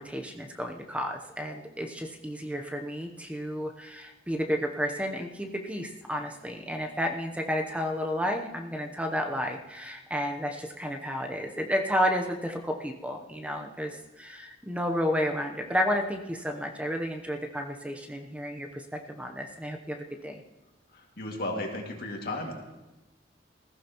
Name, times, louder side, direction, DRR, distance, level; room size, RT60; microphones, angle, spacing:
voice 1, 0.0-20.4, equal, 5° right, 3 dB, 0.8 m, -31 dB
voice 2, 21.2-22.5, left 1 dB, 55° left, 1 dB, 2.2 m, -33 dB
20.0 x 15.0 x 3.0 m, 1.0 s
head